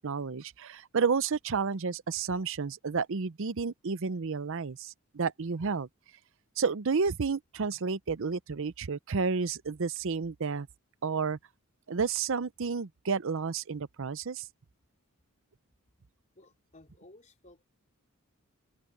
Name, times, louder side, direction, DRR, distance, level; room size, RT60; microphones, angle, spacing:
voice 1, 0.0-5.9 6.6-10.7 11.0-11.4 11.9-14.5, right 5 dB, 60° right, 0.6 m, -31 dB
voice 2, 16.3-17.6, left 1 dB, 35° left, 4.1 m, -56 dB
open air
head